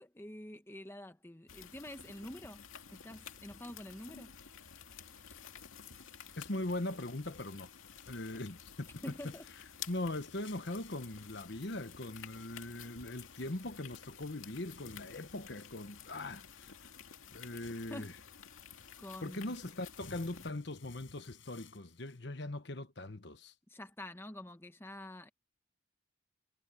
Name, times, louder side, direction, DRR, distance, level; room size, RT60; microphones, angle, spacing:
voice 1, 0.0-2.6 2.9-4.3 9.0-9.4 17.5-17.6 17.9-18.2 19.0-19.5 23.7-25.3, left 1 dB, 10° left, 1.1 m, -47 dB
sound 1, 1.5-20.5, left 7 dB, 90° left, 2.3 m, -52 dB
sound 2, 4.9-22.2, left 5 dB, 75° left, 5.8 m, -61 dB
voice 2, 6.4-7.7 8.1-8.9 9.9-16.7 17.3-18.1 19.2-23.5, left 2 dB, 55° left, 1.2 m, -40 dB
head